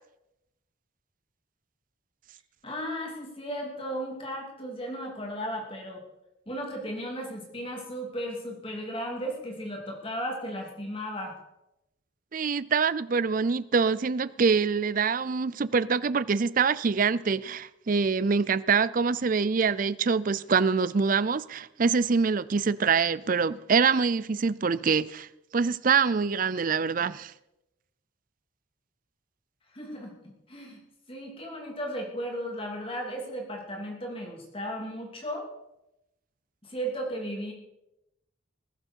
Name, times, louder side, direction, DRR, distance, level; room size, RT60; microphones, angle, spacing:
voice 1, 2.6-6.0 6.5-11.4 29.7-30.1 30.5-30.8 31.1-35.5 36.6-37.5, equal, 25° left, 2.9 m, -35 dB
voice 2, 12.3-25.3 25.5-27.3, right 5 dB, 40° right, 0.4 m, -25 dB
20.0 x 11.5 x 4.6 m
head